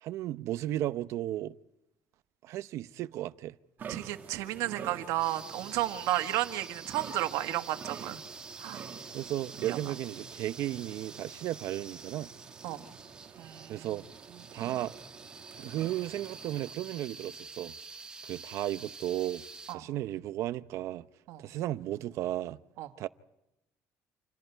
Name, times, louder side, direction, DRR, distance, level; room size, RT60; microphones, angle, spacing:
voice 1, 0.0-1.6 2.4-3.6 9.1-12.3 13.7-14.0 14.5-14.9 15.6-17.7 18.2-19.4 19.7-21.1 21.4-22.6 23.0-23.1, right 13 dB, 60° right, 0.8 m, -34 dB
sound 1, 3.8-16.7, right 7 dB, 35° right, 1.6 m, -48 dB
voice 2, 3.9-8.2 8.6-8.9 9.7-9.8 12.6-12.8 13.4-13.9 19.7-19.9 21.3-21.5 22.8-22.9, right 15 dB, 85° right, 1.9 m, -33 dB
sound 2, 5.2-19.7, right 4 dB, 15° right, 1.3 m, -48 dB
29.5 x 28.0 x 4.6 m
cardioid pair, 160°, 6 cm